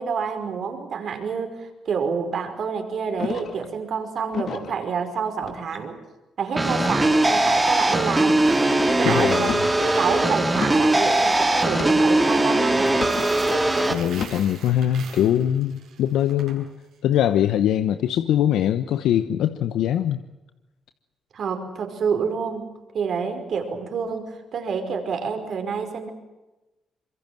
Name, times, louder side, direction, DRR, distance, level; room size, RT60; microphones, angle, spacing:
voice 1, 0.0-6.0 6.4-8.5 9.0-9.5 10.0-12.9 21.3-26.1, right 6 dB, 60° right, 6 dB, 5.3 m, -28 dB
sound 1, 3.2-3.7 4.3-4.8 5.4-5.9 6.7-7.1 7.7-8.2 9.3-9.8 10.5-10.9 11.7-12.1 12.9-13.3 14.1-14.5, left 6 dB, 60° left, 2.5 m, -33 dB
sound 2, 6.6-13.9, right 2 dB, 15° right, 2.9 m, -20 dB
Coin (dropping), 8.3-16.5, right 6 dB, 75° right, 7.5 m, -40 dB
voice 2, 9.0-9.6 13.9-16.7 17.0-20.2, left 11 dB, 80° left, 10 dB, 1.0 m, -22 dB
25.5 x 23.0 x 7.7 m, 1.1 s
cardioid pair, 90°, 0 cm